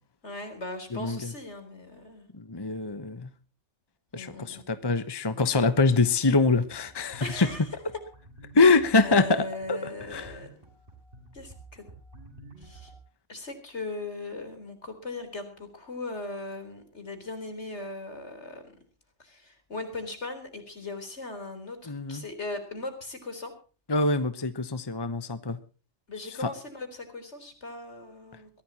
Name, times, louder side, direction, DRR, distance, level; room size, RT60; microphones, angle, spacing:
voice 1, 0.2-2.3 4.1-4.6 7.2-7.7 9.0-10.5 11.3-11.9 12.6-12.9 13.3-18.6 19.2-23.5 26.1-28.6, left 2 dB, 70° left, 7 dB, 4.3 m, -39 dB
voice 2, 0.9-1.3 2.3-3.3 4.1-7.5 8.5-9.8 10.1-10.3 21.9-22.2 23.9-25.6 26.4-26.5, left 3 dB, 20° left, 11 dB, 1.1 m, -24 dB
sound 1, 6.8-13.0, right 2 dB, 50° right, 6.8 m, -50 dB
22.5 x 16.0 x 2.9 m, 0.36 s
omnidirectional pair, 1.2 m